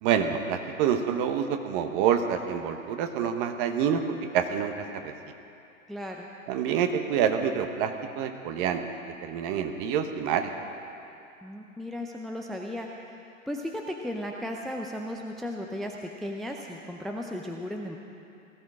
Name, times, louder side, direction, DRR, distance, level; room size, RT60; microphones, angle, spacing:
voice 1, 0.0-4.0 4.3-5.1 6.5-8.8 9.2-10.5, right 8 dB, 40° right, 7 dB, 1.3 m, -27 dB
voice 2, 5.9-6.3 11.4-12.9 13.5-18.0, left 1 dB, ahead, 1 dB, 0.5 m, -35 dB
18.0 x 14.0 x 4.9 m, 2.7 s
figure-of-eight pair, 105°, 40 cm